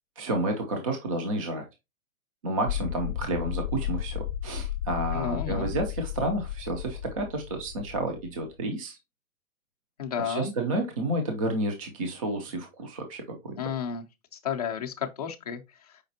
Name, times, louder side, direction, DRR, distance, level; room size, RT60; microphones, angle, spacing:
voice 1, 0.2-1.7 2.4-9.0 10.2-13.5, right 1 dB, 25° right, 0.5 m, -30 dB
sound 1, 2.7-8.5, left 11 dB, 80° left, 0.6 m, -34 dB
voice 2, 5.1-5.7 10.0-10.5 13.5-14.0 14.3-16.0, left 7 dB, 30° left, 0.4 m, -32 dB
5.1 x 3.8 x 2.7 m
hypercardioid pair, 155°, 42 cm